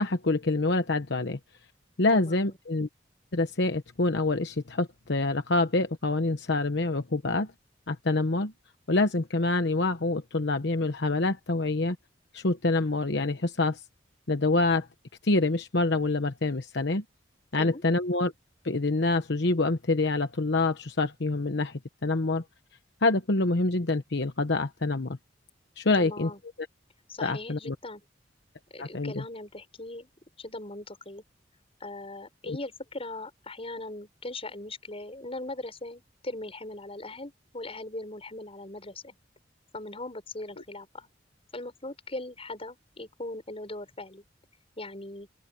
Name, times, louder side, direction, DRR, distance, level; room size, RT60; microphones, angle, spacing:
voice 1, 0.0-1.4 2.0-2.9 3.3-7.5 7.9-8.5 8.9-12.0 12.3-13.8 14.3-14.9 15.2-17.0 17.5-18.3 18.6-22.4 23.0-25.2 25.8-26.3 27.2-27.8 28.8-29.2 32.5-32.6, left 2 dB, 65° left, 1.1 m, -26 dB
voice 2, 2.1-2.5 17.6-17.8 25.9-26.4 27.1-28.0 28.7-30.1 30.4-31.2 31.8-39.1 39.7-41.1 41.5-44.2 44.8-45.3, left 2 dB, 35° left, 6.9 m, -39 dB
open air
head